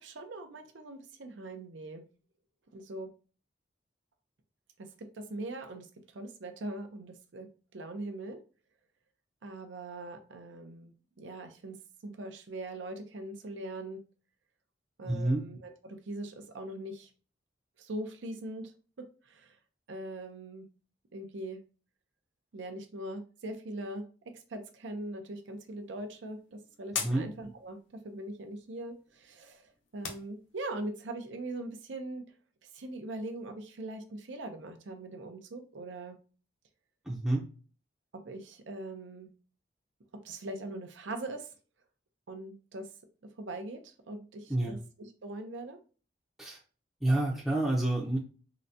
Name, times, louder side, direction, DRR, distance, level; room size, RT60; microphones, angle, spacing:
voice 1, 0.0-2.0 2.7-3.1 4.8-5.9 6.1-8.4 9.4-11.8 12.0-14.0 15.0-17.1 17.8-18.7 19.2-19.6 19.9-20.7 21.1-21.6 22.5-24.1 24.3-32.2 32.7-36.2 38.2-39.3 40.2-41.5 42.3-42.9 43.4-45.8, right 2 dB, 85° right, 7 dB, 0.5 m, -41 dB
voice 2, 15.1-15.4 27.0-27.3 37.1-37.4 44.5-44.7 46.4-46.6 47.0-48.2, right 1 dB, ahead, -5 dB, 0.5 m, -28 dB
sound 1, 25.4-30.9, left 6 dB, 85° left, 0.6 m, -44 dB
3.8 x 2.1 x 2.6 m, 0.37 s
head